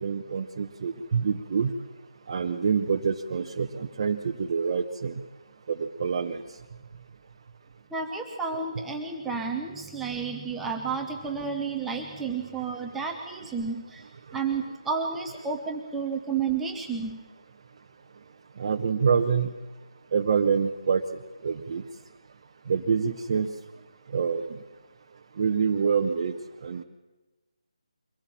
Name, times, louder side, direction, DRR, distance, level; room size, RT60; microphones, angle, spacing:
voice 1, 0.0-1.7 2.3-5.2 5.7-6.4 18.6-19.5 20.1-21.0 21.4-21.8 22.7-23.5 24.1-24.6 25.4-26.4 26.6-26.8, right 6 dB, 40° right, 2 dB, 0.9 m, -26 dB
voice 2, 7.9-14.0 14.3-17.2, right 5 dB, 5° right, 1 dB, 1.0 m, -31 dB
23.5 x 16.5 x 7.3 m, 1.2 s
figure-of-eight pair, 155°, 3 cm